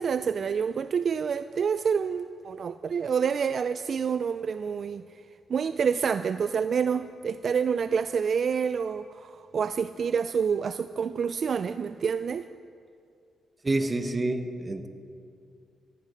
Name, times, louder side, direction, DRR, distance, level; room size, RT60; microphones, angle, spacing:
voice 1, 0.0-5.0 5.5-12.5, right 6 dB, 55° right, 12 dB, 0.4 m, -28 dB
voice 2, 13.6-14.9, right 2 dB, 25° right, 7 dB, 1.5 m, -28 dB
19.0 x 14.5 x 5.2 m, 2.4 s
cardioid pair, 75°, 0 cm